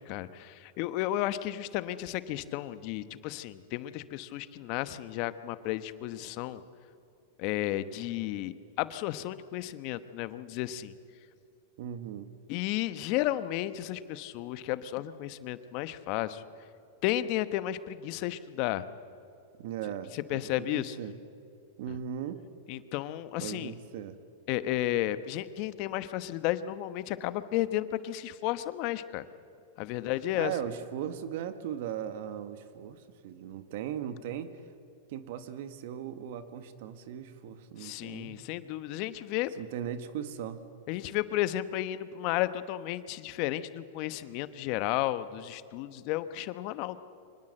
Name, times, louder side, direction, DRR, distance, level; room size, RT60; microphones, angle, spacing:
voice 1, 0.0-6.6 7.4-10.9 12.5-16.4 17.0-18.9 20.1-21.0 22.7-23.7 24.5-29.3 29.8-30.5 37.8-39.5 40.9-47.0, left 14 dB, 50° left, 13 dB, 1.0 m, -33 dB
voice 2, 11.8-12.3 19.6-21.2 21.8-22.4 23.4-24.2 30.3-34.7 35.1-38.4 39.6-40.6, right 9 dB, 65° right, 10 dB, 1.7 m, -38 dB
24.5 x 20.0 x 7.8 m, 2.4 s
hypercardioid pair, 120°, 0 cm